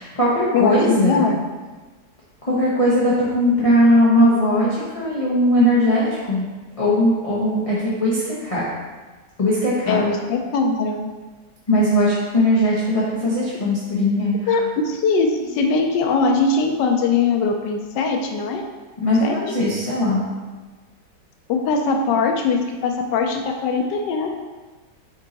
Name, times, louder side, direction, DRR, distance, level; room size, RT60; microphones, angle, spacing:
voice 1, 0.0-1.2 2.4-6.4 6.8-8.6 9.4-10.0 11.7-14.6 15.4-15.5 19.0-20.3, equal, 25° left, -8 dB, 0.9 m, -19 dB
voice 2, 0.5-1.4 9.9-11.0 14.5-18.6 19.2-19.3 21.5-24.3, left 4 dB, 85° left, 3 dB, 1.3 m, -21 dB
5.6 x 4.6 x 4.0 m, 1.3 s
omnidirectional pair, 1.9 m